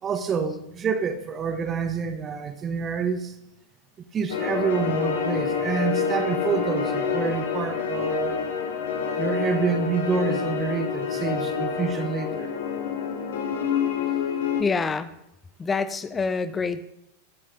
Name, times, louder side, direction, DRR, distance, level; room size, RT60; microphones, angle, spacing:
voice 1, 0.0-3.4 4.1-8.4 9.2-12.5, right 6 dB, 25° right, 1.6 m, -27 dB
sound 1, 4.3-14.6, left 6 dB, 60° left, 2.1 m, -27 dB
voice 2, 14.6-15.1 15.6-16.9, left 4 dB, 15° left, 1.0 m, -26 dB
23.5 x 10.5 x 3.9 m
figure-of-eight pair, 90°, 0 cm